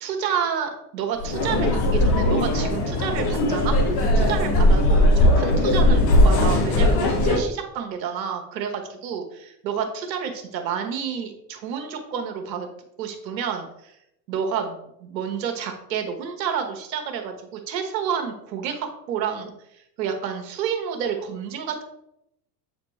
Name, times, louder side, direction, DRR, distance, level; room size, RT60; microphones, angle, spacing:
voice 1, 0.0-3.7 4.1-12.7 13.0-13.9 14.3-19.5 20.0-21.8, right 7 dB, 90° right, 5 dB, 1.3 m, -29 dB
sound 1, 1.2-7.4, left 1 dB, 50° left, 1.4 m, -19 dB
7.8 x 4.3 x 3.1 m, 0.79 s
supercardioid pair, 100°, 49 cm